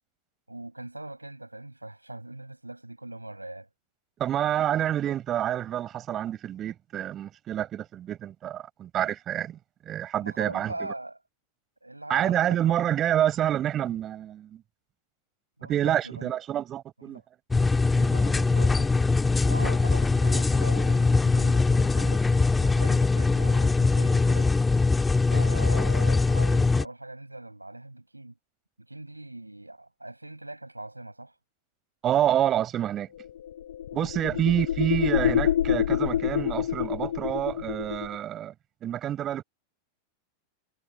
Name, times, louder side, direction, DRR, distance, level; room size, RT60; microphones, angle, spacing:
voice 1, 0.5-3.7 10.2-11.2 11.8-12.6 15.6-16.3 17.0-17.2 18.0-18.9 19.4-24.5 25.3-28.4 28.9-31.4 34.3-34.5, right 2 dB, 85° right, 6.9 m, -41 dB
voice 2, 4.2-9.6 9.8-10.9 12.1-14.6 15.7-17.2 32.0-33.1 33.9-38.5 38.8-39.4, right 11 dB, 30° right, 6.8 m, -28 dB
sound 1, 17.5-26.8, left 3 dB, 10° left, 2.2 m, -22 dB
sound 2, 33.2-38.2, left 10 dB, 65° left, 0.8 m, -27 dB
figure-of-eight pair, 90°, 0 cm